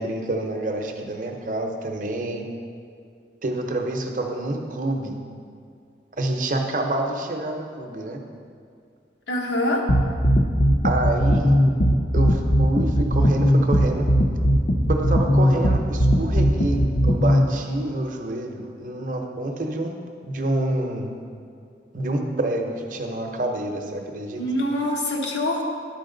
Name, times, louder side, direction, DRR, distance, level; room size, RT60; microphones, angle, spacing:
voice 1, 0.0-2.4 3.4-5.1 6.2-8.2 10.8-11.6 12.1-14.0 14.9-19.9 20.2-21.1 21.9-24.4, right 2 dB, 45° right, 3 dB, 0.7 m, -27 dB
voice 2, 9.3-9.8 24.4-25.6, left 1 dB, 80° left, 0 dB, 1.1 m, -24 dB
sound 1, 9.9-17.5, equal, 40° left, 0.5 m, -18 dB
10.5 x 4.7 x 3.8 m, 2.3 s
head